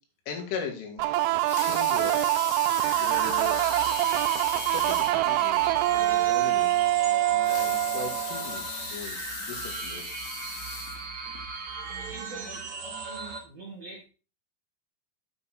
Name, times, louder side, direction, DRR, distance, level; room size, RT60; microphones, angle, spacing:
voice 1, 0.3-1.0 1.6-2.2 3.0-3.6 4.7-6.7 7.3-10.1, left 5 dB, 80° left, 3 dB, 4.3 m, -39 dB
sound 1, 1.0-8.6, right 15 dB, 90° right, 3.1 m, -25 dB
Water tap faucet / Sink (filling or washing) / Liquid, 1.3-5.2 5.7-5.8 6.1-6.2 7.3-11.4 12.0-12.1, left 6 dB, 65° left, 2.8 m, -38 dB
sound 2, 2.7-13.4, right 4 dB, 35° right, 2.8 m, -37 dB
voice 2, 11.7-14.0, right 3 dB, 55° right, -3 dB, 1.9 m, -45 dB
9.3 x 5.8 x 4.1 m, 0.34 s
omnidirectional pair, 5.6 m